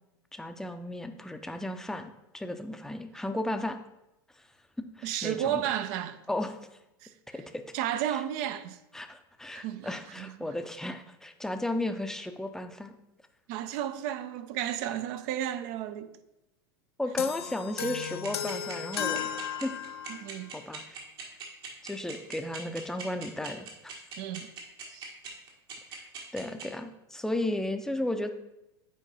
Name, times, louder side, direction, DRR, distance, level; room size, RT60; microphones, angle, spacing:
voice 1, 0.3-3.8 4.4-4.5 4.8-5.7 6.3-6.6 7.3-7.6 8.1-8.2 8.9-12.9 17.0-19.3 19.6-19.7 20.5-21.0 21.8-23.7 26.3-28.3, left 1 dB, 5° left, 0.6 m, -34 dB
voice 2, 5.0-6.2 7.0-7.4 7.7-8.8 9.5-10.5 13.5-16.2 20.1-20.5 24.2-24.5 24.9-25.1, right 11 dB, 55° right, 0.5 m, -33 dB
sound 1, 17.2-20.4, left 9 dB, 85° left, 0.4 m, -35 dB
sound 2, 17.8-26.6, right 7 dB, 70° right, 1.7 m, -41 dB
7.4 x 4.5 x 4.2 m
hypercardioid pair, 90°, 13 cm